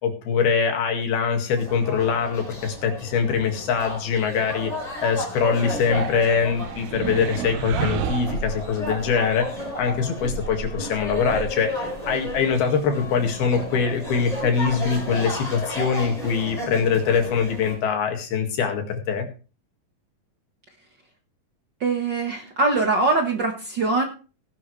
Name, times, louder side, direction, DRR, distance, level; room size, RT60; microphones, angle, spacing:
voice 1, 0.0-4.7 5.0-11.7 12.1-19.3, left 6 dB, 90° left, 3 dB, 4.0 m, -23 dB
sound 1, 1.6-17.8, equal, 10° left, 4.5 m, -33 dB
sound 2, 5.7-9.1, right 10 dB, 90° right, 2.9 m, -31 dB
voice 2, 21.8-24.0, right 3 dB, 65° right, 3 dB, 1.1 m, -22 dB
17.5 x 11.0 x 3.2 m, 0.35 s
omnidirectional pair, 4.2 m